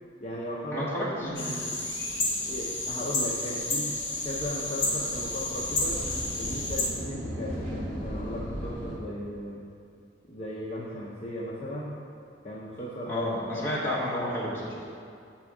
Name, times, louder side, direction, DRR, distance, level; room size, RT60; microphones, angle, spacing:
voice 1, 0.2-0.9 1.2-1.8 2.5-6.0 6.3-9.6 10.3-12.0 12.4-13.3 13.5-13.7, equal, 30° left, -7 dB, 0.6 m, -37 dB
voice 2, 0.7-1.7 13.1-14.9, left 1 dB, 10° left, -7 dB, 1.1 m, -31 dB
sound 1, 1.2-9.0, equal, 40° right, 1.4 m, -39 dB
sound 2, 1.4-6.9, left 2 dB, 70° left, 1.0 m, -31 dB
7.5 x 3.4 x 4.7 m, 2.4 s
head